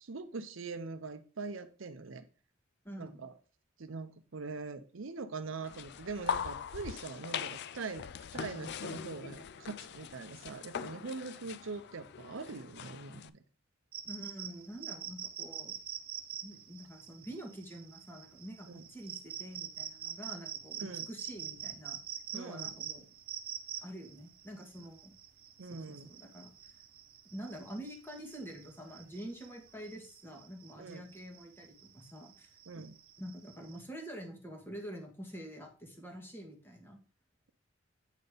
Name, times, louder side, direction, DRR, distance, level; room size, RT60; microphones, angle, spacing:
voice 1, 0.0-2.2 3.0-3.3 3.8-13.4 18.7-18.8 20.8-21.1 22.3-22.8 25.6-26.1 30.8-31.0 32.7-32.9, right 4 dB, 70° right, 10 dB, 0.7 m, -43 dB
voice 2, 2.8-3.3 14.0-15.8 16.4-22.0 22.3-23.1 23.8-25.2 25.7-26.7 27.3-32.8 33.2-37.0, equal, 10° left, 2 dB, 1.7 m, -47 dB
sound 1, 5.6-13.3, left 7 dB, 55° left, 0.4 m, -41 dB
sound 2, 13.9-33.8, right 9 dB, 50° right, 1.1 m, -45 dB
8.1 x 4.3 x 5.1 m, 0.36 s
head